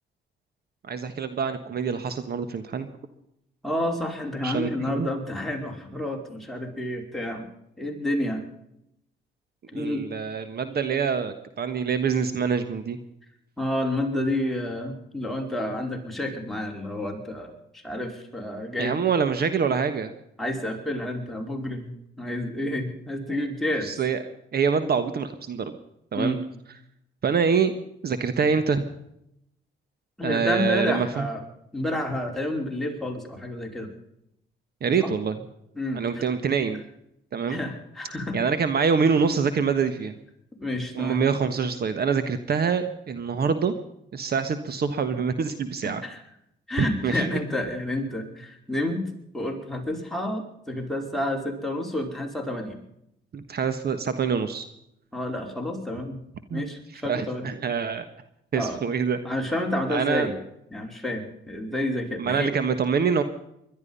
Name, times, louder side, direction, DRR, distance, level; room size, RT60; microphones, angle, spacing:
voice 1, 0.8-2.9 4.4-5.1 9.7-13.0 18.8-20.1 23.3-23.5 23.8-24.2 24.5-25.8 26.1-26.4 27.2-27.7 28.0-28.8 30.2-31.2 34.8-35.4 35.9-36.8 37.3-37.6 38.3-40.2 40.9-43.7 44.1-46.0 46.8-47.4 53.3-54.7 56.5-56.6 57.0-58.1 58.5-59.2 59.9-60.3 62.2-63.2, right 6 dB, 50° right, 10 dB, 1.4 m, -25 dB
voice 2, 3.6-7.5 7.8-8.4 9.7-10.1 13.6-19.0 20.4-23.9 26.2-26.4 30.2-31.4 31.7-33.9 35.0-35.1 35.7-36.2 37.5-38.4 40.6-41.2 46.0-46.2 46.7-49.0 49.3-52.8 55.1-56.2 56.5-57.5 58.6-58.8 59.2-60.3 60.7-62.5, left 1 dB, ahead, 0 dB, 4.9 m, -29 dB
21.5 x 12.0 x 5.5 m, 0.78 s
cardioid pair, 90°, 20 cm